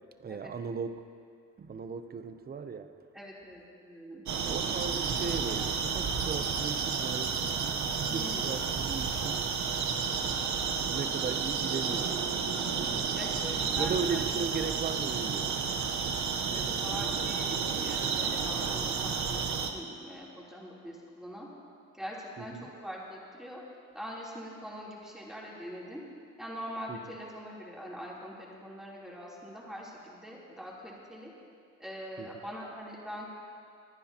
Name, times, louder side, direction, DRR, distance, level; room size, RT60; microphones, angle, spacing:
voice 1, 0.2-1.0 1.6-2.9 4.5-9.5 10.2-12.3 13.8-15.7 22.4-22.6 26.9-27.0 32.2-32.3, right 5 dB, 30° right, 9 dB, 0.7 m, -37 dB
voice 2, 3.1-4.2 8.1-8.6 13.1-14.2 16.5-21.5 21.9-23.6 23.9-26.0 26.4-31.3 31.8-33.3, equal, ahead, -6 dB, 3.4 m, -43 dB
sound 1, 4.3-19.7, right 6 dB, 65° right, 1.1 m, -31 dB
25.0 x 10.0 x 3.0 m, 2.3 s
cardioid pair, 90°, 30 cm